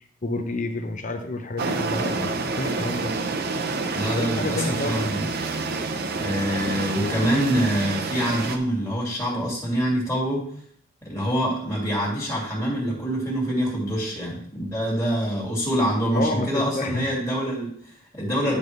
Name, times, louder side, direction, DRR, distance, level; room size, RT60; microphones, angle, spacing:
voice 1, 0.0-3.2 4.1-5.1 16.1-17.1 18.5-18.6, left 2 dB, 40° left, 7 dB, 0.8 m, -29 dB
sound 1, 1.6-8.6, right 3 dB, 50° right, 0.7 m, -28 dB
voice 2, 3.9-5.3 6.1-10.5 11.0-18.6, equal, 15° left, -5 dB, 2.3 m, -25 dB
10.0 x 5.2 x 3.2 m, 0.63 s
head